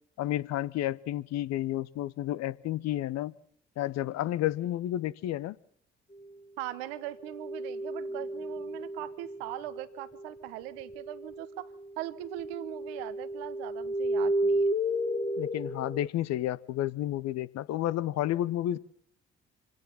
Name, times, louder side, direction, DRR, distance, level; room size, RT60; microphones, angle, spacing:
voice 1, 0.2-3.3 3.8-5.6 15.4-18.8, left 13 dB, 55° left, 18 dB, 0.9 m, -31 dB
voice 2, 6.6-11.7 12.0-14.7, right 14 dB, 75° right, 13 dB, 1.2 m, -40 dB
sound 1, 7.2-10.3 10.8-16.1, right 1 dB, 20° left, 1.4 m, -33 dB
26.0 x 17.5 x 5.8 m, 0.63 s
figure-of-eight pair, 40°, 31 cm